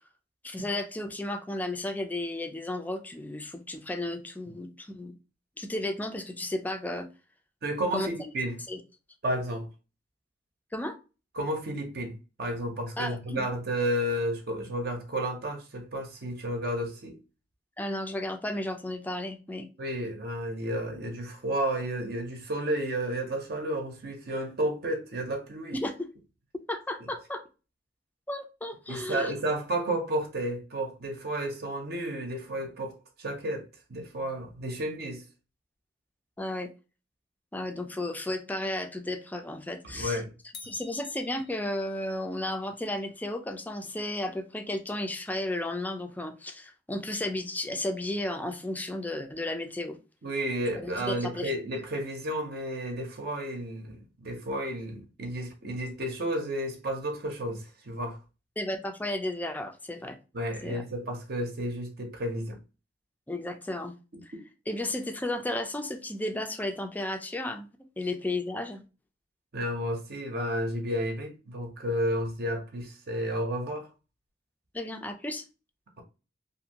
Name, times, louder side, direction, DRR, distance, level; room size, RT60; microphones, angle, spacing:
voice 1, 0.4-5.2 5.6-7.1 7.9-8.1 8.7-8.8 10.7-11.0 13.0-13.4 17.8-19.7 25.7-26.1 26.5-27.4 28.3-29.3 36.4-36.7 37.5-40.2 40.7-50.0 50.8-51.5 58.6-60.2 60.6-60.8 63.3-64.0 64.7-67.7 68.0-68.8 74.7-75.4, left 1 dB, 10° left, 0.4 m, -33 dB
voice 2, 7.6-8.6 9.2-9.7 11.4-17.2 19.8-25.8 28.9-35.2 39.9-40.3 50.2-58.2 60.3-62.6 64.1-64.2 69.5-73.9, right 1 dB, 60° right, 0.7 m, -32 dB
sound 1, 40.5-42.1, left 5 dB, 70° left, 0.7 m, -49 dB
2.6 x 2.5 x 2.8 m
head